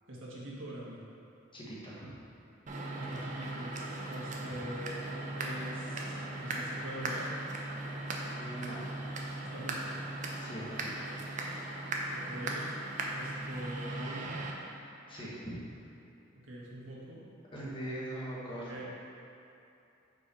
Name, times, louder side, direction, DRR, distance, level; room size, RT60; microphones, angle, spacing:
voice 1, 0.1-1.0 2.9-3.7 4.1-7.3 9.4-10.0 12.1-12.7 13.1-14.5 16.4-17.3 18.7-18.9, equal, 85° right, -5 dB, 1.4 m, -44 dB
voice 2, 1.5-2.1 8.3-8.8 10.4-11.1 15.1-15.6 17.5-18.9, right 1 dB, 25° left, -7 dB, 1.2 m, -41 dB
sound 1, 2.7-14.5, right 2 dB, 40° right, 0.6 m, -38 dB
5.7 x 4.7 x 4.8 m, 2.8 s
head